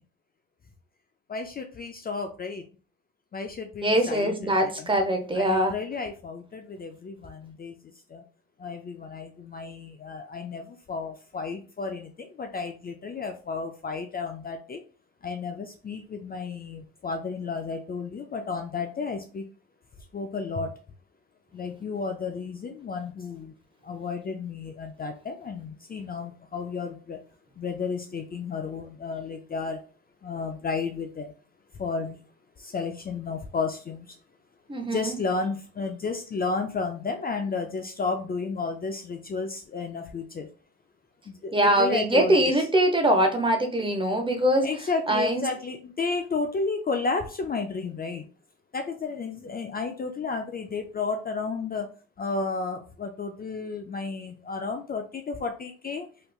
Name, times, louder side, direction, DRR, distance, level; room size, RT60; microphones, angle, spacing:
voice 1, 1.3-2.6 3.3-4.9 5.3-8.2 8.6-14.8 15.2-19.5 20.1-20.8 21.5-23.5 23.8-27.2 27.6-29.8 30.2-31.3 31.8-32.2 32.6-34.2 34.9-40.5 41.3-42.6 44.6-48.3 48.7-51.9 52.2-56.1, left 4 dB, 30° left, 6 dB, 0.4 m, -32 dB
voice 2, 3.8-5.7 34.7-35.2 41.5-44.7 45.1-45.4, right 1 dB, 15° right, 5 dB, 0.7 m, -23 dB
3.2 x 3.0 x 2.3 m, 0.37 s
cardioid pair, 90°, 30 cm